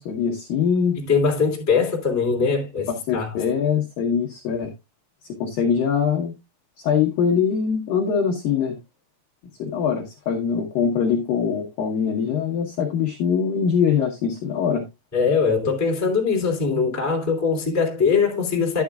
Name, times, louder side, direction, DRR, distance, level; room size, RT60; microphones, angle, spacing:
voice 1, 0.0-1.0 2.9-4.7 5.4-6.3 6.8-8.8 9.6-14.8, left 7 dB, 75° left, 2.0 m, -23 dB
voice 2, 1.0-3.4 15.1-18.8, left 5 dB, 5° left, 1.2 m, -21 dB
11.5 x 9.1 x 2.3 m
omnidirectional pair, 5.8 m